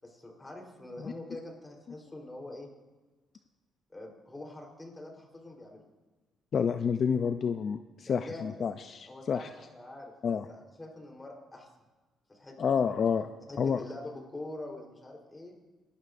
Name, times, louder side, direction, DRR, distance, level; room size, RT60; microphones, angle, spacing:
voice 1, 0.0-2.7 3.9-5.8 8.1-8.7 9.1-10.1 10.5-11.7 12.3-12.8 13.5-15.5, left 2 dB, 20° left, 0 dB, 3.8 m, -44 dB
voice 2, 6.5-9.5 10.2-10.5 12.6-13.3 13.6-13.8, left 6 dB, 55° left, 9 dB, 0.4 m, -29 dB
21.5 x 12.5 x 2.6 m, 1.3 s
cardioid pair, 90°, 0 cm